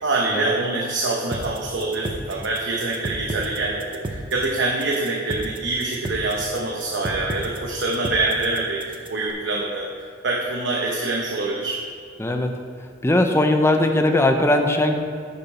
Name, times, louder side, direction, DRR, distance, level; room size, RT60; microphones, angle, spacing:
voice 1, 0.0-11.8, right 2 dB, 70° right, -2 dB, 0.9 m, -25 dB
sound 1, 1.3-9.3, right 1 dB, 30° right, 0.6 m, -32 dB
voice 2, 12.2-12.6 13.0-14.9, left 1 dB, 15° left, 5 dB, 0.6 m, -19 dB
9.4 x 6.8 x 4.3 m, 2.2 s
head